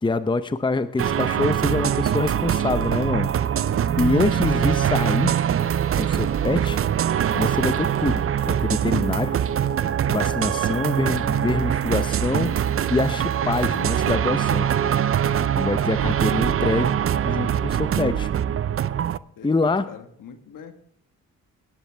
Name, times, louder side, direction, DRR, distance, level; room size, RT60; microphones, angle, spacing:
voice 1, 0.0-3.3 4.0-5.3 6.0-6.8 7.3-9.4 10.1-12.5 12.9-14.7 15.6-17.0 17.3-18.3 19.4-19.9, left 3 dB, 15° left, 12 dB, 0.8 m, -25 dB
sound 1, 1.0-19.2, right 9 dB, 40° right, 0.5 m, -23 dB
voice 2, 3.6-4.0 19.4-20.7, left 6 dB, 65° left, 8 dB, 1.8 m, -43 dB
18.5 x 10.0 x 3.5 m, 0.67 s
supercardioid pair, 70°, 34 cm